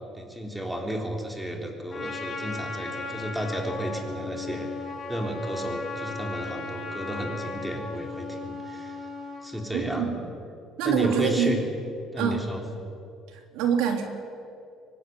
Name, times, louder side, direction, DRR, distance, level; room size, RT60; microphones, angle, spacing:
voice 1, 0.1-4.7 5.1-9.0 9.4-10.1 10.9-11.6 12.1-12.6, equal, 5° right, 2 dB, 3.7 m, -32 dB
Trumpet, 1.9-9.5, left 3 dB, 25° left, 6.0 m, -36 dB
voice 2, 9.7-10.2 10.8-11.6 12.2-12.4 13.3-14.0, right 7 dB, 90° right, 4 dB, 3.4 m, -25 dB
24.0 x 18.5 x 9.3 m, 2.5 s
cardioid pair, 135°, 0 cm